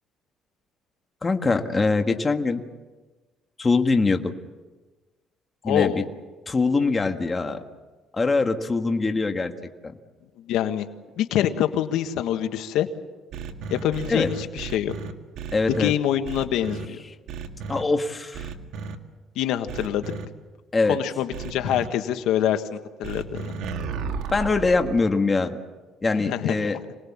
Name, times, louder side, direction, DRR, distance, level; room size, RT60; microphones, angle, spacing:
voice 1, 1.2-2.6 3.6-4.3 5.6-6.0 6.5-7.6 8.1-9.5 9.8-9.9 14.1-14.3 15.5-15.9 17.7-18.5 20.7-21.0 24.3-25.6 26.0-26.8, left 3 dB, 20° left, 5 dB, 1.6 m, -23 dB
voice 2, 5.6-6.0 10.4-10.9 11.2-12.9 13.7-14.9 15.7-17.0 19.3-20.1 20.9-23.5 26.2-26.5, left 11 dB, 80° left, 8 dB, 1.4 m, -25 dB
sound 1, 13.3-15.9 16.2-16.8 17.3-17.8 18.3-19.0 19.7-20.2 21.3-21.9 23.0-25.0, right 5 dB, 75° right, 1.9 m, -33 dB
27.0 x 20.0 x 7.3 m, 1.2 s
cardioid pair, 125°, 0 cm